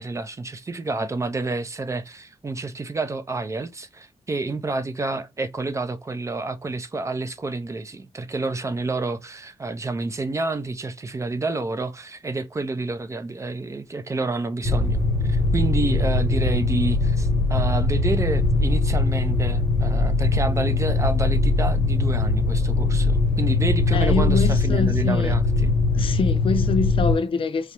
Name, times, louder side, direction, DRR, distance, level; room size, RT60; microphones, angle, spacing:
voice 1, 0.0-25.7, right 3 dB, 25° right, 0.5 m, -29 dB
sound 1, 14.6-27.1, left 3 dB, 10° left, 0.9 m, -21 dB
voice 2, 23.9-25.3 25.9-27.7, left 4 dB, 55° left, 0.5 m, -25 dB
4.8 x 2.1 x 2.8 m
wide cardioid pair, 110°, 11 cm